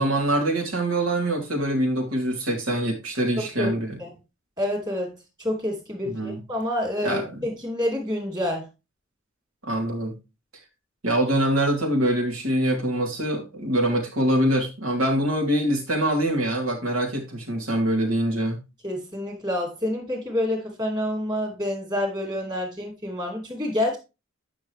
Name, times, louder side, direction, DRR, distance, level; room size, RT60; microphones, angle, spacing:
voice 1, 0.0-4.0 6.0-6.4 7.0-7.4 9.6-10.1 11.0-18.6, right 1 dB, 90° right, 1 dB, 3.1 m, -24 dB
voice 2, 3.4-3.7 4.0-4.1 4.6-8.7 18.8-24.0, left 1 dB, 20° right, 2 dB, 2.6 m, -28 dB
9.4 x 6.1 x 3.2 m, 0.27 s
head